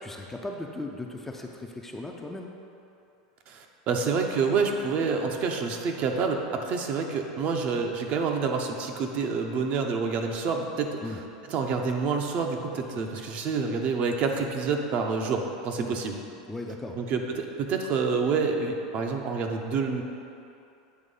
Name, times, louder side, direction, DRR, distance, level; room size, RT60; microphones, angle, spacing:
voice 1, 0.0-2.5 11.0-11.2 15.8-16.0 16.5-17.0, left 2 dB, 10° left, 1 dB, 0.5 m, -37 dB
voice 2, 3.5-11.2 11.5-16.2 17.0-20.0, right 5 dB, 45° right, 3 dB, 0.6 m, -28 dB
8.0 x 3.1 x 5.4 m, 2.7 s
supercardioid pair, 125°, 4 cm